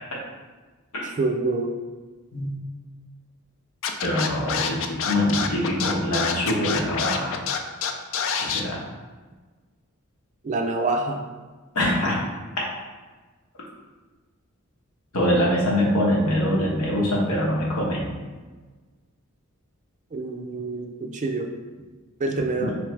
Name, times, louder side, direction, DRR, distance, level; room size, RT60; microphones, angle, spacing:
voice 1, 1.0-1.8 10.4-11.2 20.1-21.5 22.2-22.7, right 3 dB, 35° right, 3 dB, 0.4 m, -26 dB
Scratching (performance technique), 3.8-8.6, left 7 dB, 60° left, 0.3 m, -26 dB
voice 2, 4.0-7.3 8.4-8.8 11.7-12.2 15.1-18.1 22.6-22.7, left 1 dB, 80° left, -4 dB, 1.1 m, -23 dB
3.4 x 3.2 x 3.2 m, 1.3 s
head